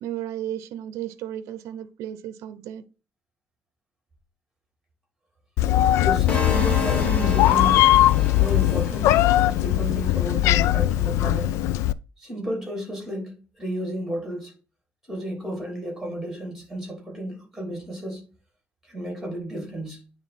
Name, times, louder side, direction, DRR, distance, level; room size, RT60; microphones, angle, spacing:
voice 1, 0.0-2.8, right 11 dB, 90° right, 0.6 m, -34 dB
Meow, 5.6-11.9, left 14 dB, 85° left, 0.3 m, -20 dB
voice 2, 6.0-8.0 8.4-11.6 12.2-14.5 15.1-18.3 18.8-20.0, equal, 5° right, 2.9 m, -32 dB
sound 1, 6.3-10.3, left 3 dB, 30° left, 1.1 m, -32 dB
9.2 x 3.4 x 4.1 m
cardioid pair, 180°, 5 cm